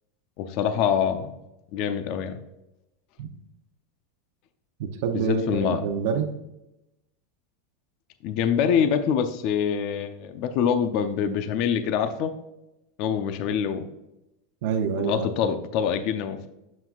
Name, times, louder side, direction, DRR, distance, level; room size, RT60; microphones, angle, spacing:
voice 1, 0.4-1.3 1.7-2.4 5.1-5.8 8.2-12.3 13.0-13.9 15.0-16.5, left 7 dB, 55° left, 9 dB, 0.5 m, -25 dB
voice 2, 4.8-6.3 14.6-15.3, right 6 dB, 70° right, 5 dB, 0.6 m, -27 dB
7.3 x 5.8 x 2.4 m, 0.92 s
supercardioid pair, 120°, 0 cm